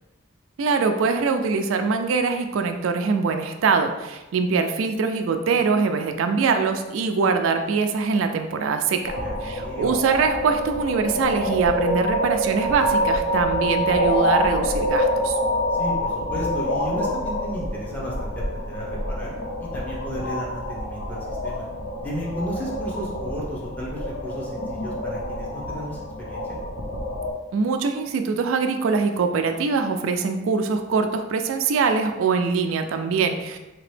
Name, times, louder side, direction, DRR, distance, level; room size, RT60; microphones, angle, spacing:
voice 1, 0.6-15.4 27.5-33.6, right 5 dB, 85° right, 6 dB, 0.3 m, -23 dB
sound 1, 9.0-27.3, equal, 65° left, 0.6 m, -26 dB
voice 2, 9.2-9.9 15.7-19.3 19.6-21.7 22.0-26.6, equal, 10° left, -5 dB, 0.7 m, -34 dB
3.4 x 2.9 x 3.2 m, 1.0 s
head